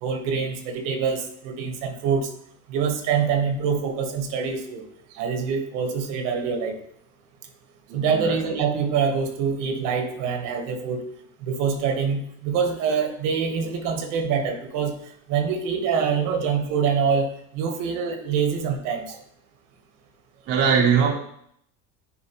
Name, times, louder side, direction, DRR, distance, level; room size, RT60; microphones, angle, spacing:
voice 1, 0.0-2.3 2.7-4.8 5.1-6.8 7.9-11.0 11.4-14.9 15.3-19.2, right 6 dB, 60° right, 6 dB, 1.3 m, -25 dB
voice 2, 7.9-8.4 20.5-21.1, right 6 dB, 40° right, 0 dB, 0.9 m, -21 dB
9.8 x 4.8 x 3.0 m, 0.70 s
cardioid pair, 160°, 35 cm